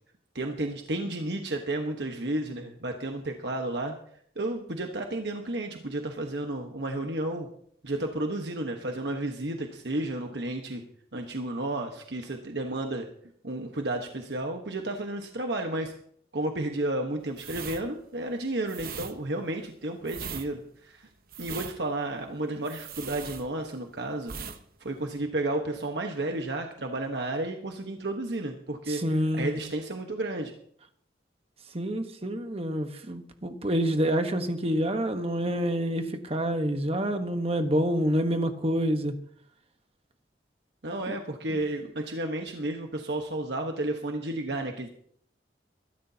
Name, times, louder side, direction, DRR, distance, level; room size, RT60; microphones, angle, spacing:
voice 1, 0.3-3.9 4.3-7.5 7.8-10.8 11.1-13.1 13.4-15.9 16.3-21.1 21.4-24.3 24.8-29.0 29.3-30.5 40.8-44.9, right 1 dB, 70° right, 3 dB, 1.3 m, -32 dB
sound 1, 17.3-23.9 24.2-24.6 24.9-25.1, right 6 dB, 55° right, 1.0 m, -40 dB
voice 2, 28.9-29.6 31.7-39.1 41.1-41.2 41.5-41.6, equal, 35° right, 6 dB, 1.3 m, -27 dB
23.0 x 12.0 x 2.9 m, 0.65 s
head